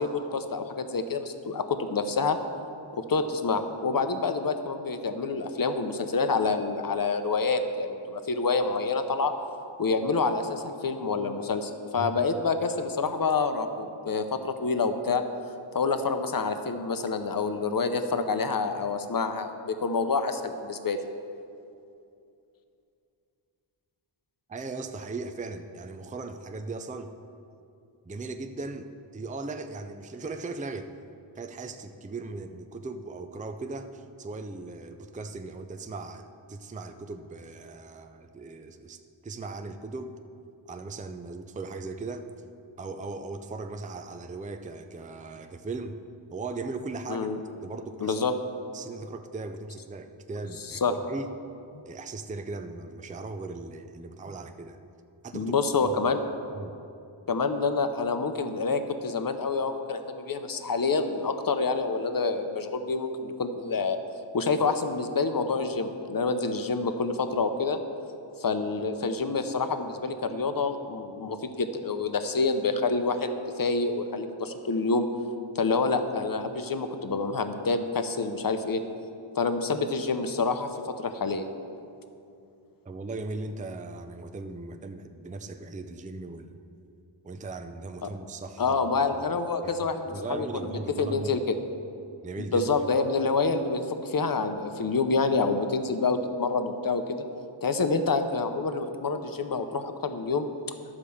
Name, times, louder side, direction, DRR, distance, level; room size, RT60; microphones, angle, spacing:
voice 1, 0.0-2.4 2.9-9.3 9.8-15.2 15.7-21.0 47.1-47.4 48.0-48.3 50.8-50.9 55.3-56.2 57.3-64.0 64.3-67.8 68.4-73.3 73.6-75.1 75.5-78.8 79.4-81.5 88.6-91.4 92.5-97.2 97.6-100.5, left 4 dB, 45° left, 8 dB, 0.8 m, -27 dB
voice 2, 24.5-27.1 28.0-28.9 29.1-30.9 31.4-40.2 40.7-42.3 42.8-46.0 46.3-47.3 47.6-48.2 48.7-51.3 51.9-54.8 55.2-55.5 55.8-55.9 56.5-56.8 82.8-86.6 87.2-88.7 89.1-89.2 89.6-91.4 92.2-92.7, right 3 dB, 15° right, 7 dB, 0.4 m, -38 dB
12.0 x 4.9 x 7.0 m, 2.6 s
wide cardioid pair, 90°, 46 cm